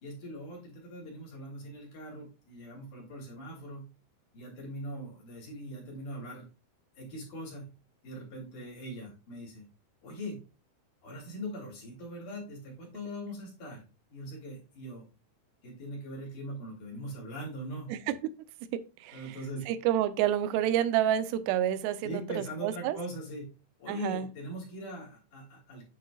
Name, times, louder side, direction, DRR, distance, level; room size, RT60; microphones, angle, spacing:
voice 1, 0.0-3.8 4.3-6.5 7.0-7.6 8.0-9.6 10.0-10.4 11.0-13.8 14.1-15.0 15.6-17.9 19.1-19.7 22.0-23.5 23.8-25.9, equal, 45° left, -1 dB, 4.4 m, -41 dB
voice 2, 18.7-19.4 19.7-23.0 23.9-24.3, right 11 dB, 80° right, 12 dB, 2.7 m, -29 dB
9.3 x 5.8 x 2.3 m, 0.30 s
omnidirectional pair, 5.2 m